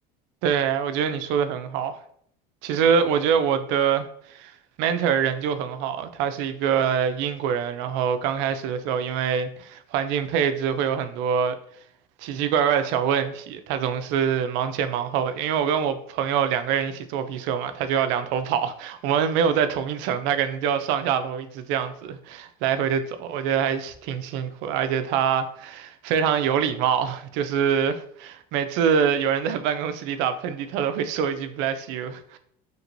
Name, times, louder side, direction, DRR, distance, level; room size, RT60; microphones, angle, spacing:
voice 1, 0.4-1.9 2.6-4.5 4.8-11.6 12.2-32.4, right 7 dB, 75° right, 0.4 m, -25 dB
2.9 x 2.9 x 2.5 m
supercardioid pair, 100°, 20 cm